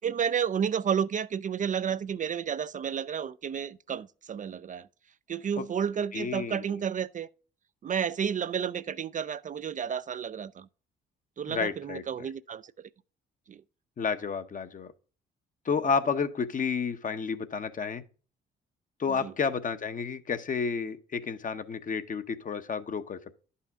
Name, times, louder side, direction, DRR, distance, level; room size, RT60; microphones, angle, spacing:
voice 1, 0.0-4.9 5.3-7.3 7.8-10.7 11.4-12.9 13.5-13.6 19.1-19.3, right 7 dB, 40° right, 0.4 m, -31 dB
voice 2, 6.1-6.8 11.5-12.0 14.0-14.9 15.6-18.0 19.0-23.4, left 5 dB, 40° left, 1.0 m, -31 dB
11.0 x 5.6 x 3.5 m
cardioid pair, 90°, 20 cm